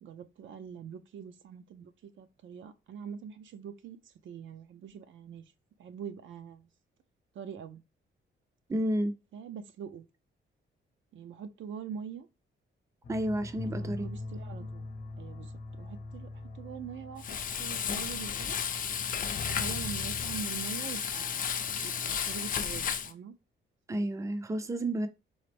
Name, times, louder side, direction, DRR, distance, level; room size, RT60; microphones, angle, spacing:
voice 1, 0.0-5.4 5.8-6.7 7.3-7.8 9.3-10.1 11.1-12.3 13.6-14.9 15.2-18.6 19.5-21.5 21.8-23.3, right 7 dB, 70° right, 0.5 m, -44 dB
voice 2, 8.7-9.2 13.1-14.1 23.9-25.1, right 1 dB, 15° right, 0.4 m, -31 dB
sound 1, 13.0-20.4, left 2 dB, 60° left, 0.8 m, -42 dB
Frying (food), 17.2-23.1, left 7 dB, 45° left, 0.4 m, -33 dB
4.0 x 3.3 x 3.3 m
wide cardioid pair, 165°, 20 cm